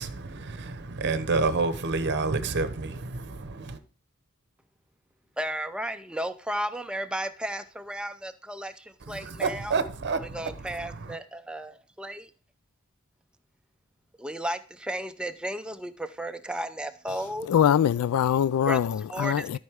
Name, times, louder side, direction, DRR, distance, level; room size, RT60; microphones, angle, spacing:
voice 1, 0.0-3.8 9.1-10.7 11.0-11.2, right 4 dB, 55° right, 0.8 m, -29 dB
voice 2, 5.4-9.8 10.2-12.3 14.2-17.5 18.7-18.8 19.1-19.6, right 1 dB, 5° right, 0.5 m, -34 dB
voice 3, 17.5-19.6, left 9 dB, 80° left, 0.3 m, -23 dB
12.5 x 5.4 x 3.5 m
head